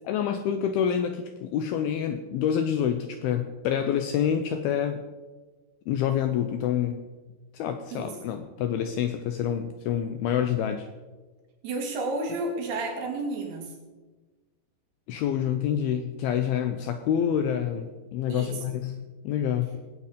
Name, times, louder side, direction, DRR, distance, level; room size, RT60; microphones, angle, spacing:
voice 1, 0.0-5.0 5.9-7.0 7.5-10.9 15.1-19.8, left 9 dB, 80° left, 8 dB, 2.3 m, -27 dB
voice 2, 11.6-13.7 18.3-18.6, right 2 dB, 70° right, 0 dB, 4.2 m, -31 dB
19.5 x 8.5 x 5.1 m, 1.3 s
omnidirectional pair, 5.0 m